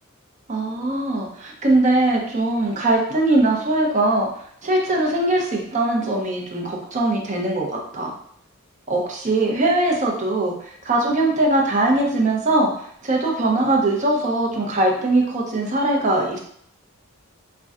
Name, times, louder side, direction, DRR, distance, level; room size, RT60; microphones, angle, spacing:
voice 1, 0.5-4.3 4.6-8.1 8.9-10.5 10.8-12.7 13.0-16.4, right 2 dB, 35° right, -1 dB, 0.6 m, -21 dB
5.2 x 2.2 x 2.4 m, 0.65 s
head